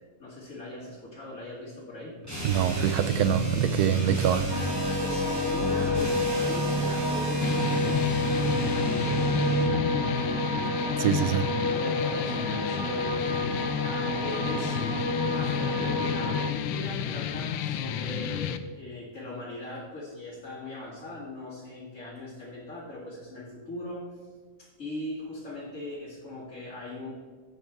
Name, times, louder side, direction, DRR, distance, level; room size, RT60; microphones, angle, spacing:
voice 1, 0.0-2.2 5.0-10.3 11.2-11.4 11.7-13.4 13.7-14.9 15.3-24.0 24.6-27.1, left 1 dB, 40° left, -9 dB, 2.7 m, -40 dB
sound 1, 2.2-9.8, right 1 dB, 10° right, 2.2 m, -30 dB
voice 2, 2.4-4.5 10.6-10.7 11.0-11.4, right 10 dB, 75° right, 12 dB, 0.9 m, -25 dB
sound 2, 4.5-16.5, left 1 dB, 35° right, 0.3 m, -30 dB
sound 3, 7.4-18.6, left 8 dB, 80° left, 1.4 m, -31 dB
11.5 x 8.4 x 3.5 m, 1.5 s
omnidirectional pair, 2.1 m